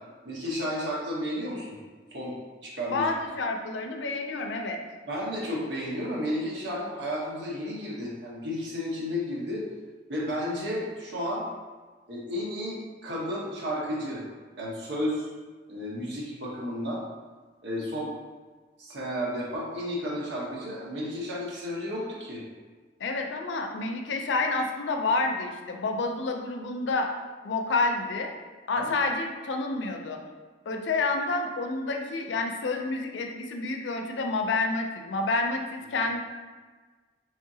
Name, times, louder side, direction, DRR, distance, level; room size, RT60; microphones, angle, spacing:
voice 1, 0.2-1.8 2.1-2.4 2.6-3.1 5.1-9.7 10.1-11.4 12.1-14.2 14.5-15.3 15.7-17.0 17.6-18.1 18.8-22.4 28.7-28.9, equal, 80° right, -5 dB, 0.9 m, -32 dB
voice 2, 2.9-4.8 23.0-27.1 27.4-28.3 28.7-30.2 30.7-36.2, left 3 dB, 80° left, 3 dB, 0.4 m, -29 dB
3.6 x 3.5 x 2.7 m, 1.4 s
head